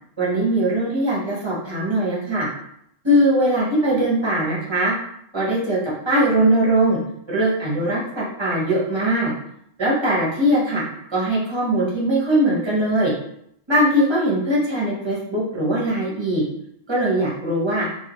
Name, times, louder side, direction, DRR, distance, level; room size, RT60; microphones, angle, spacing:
voice 1, 0.2-2.5 3.0-4.9 5.3-5.8 6.0-7.0 7.3-9.3 9.8-10.8 11.1-13.1 13.7-16.4 16.9-17.9, right 1 dB, 25° right, -6 dB, 0.7 m, -20 dB
2.3 x 2.3 x 2.8 m, 0.73 s
omnidirectional pair, 1.4 m